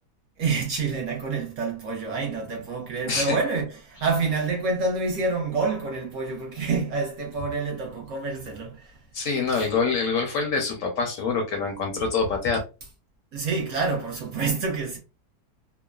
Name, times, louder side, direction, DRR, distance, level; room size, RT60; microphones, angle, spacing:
voice 1, 0.4-8.9 9.5-9.6 13.3-15.0, right 4 dB, 65° right, 0.8 m, -27 dB
voice 2, 9.1-12.6, left 4 dB, 65° left, 0.8 m, -25 dB
3.0 x 2.1 x 2.2 m
omnidirectional pair, 1.7 m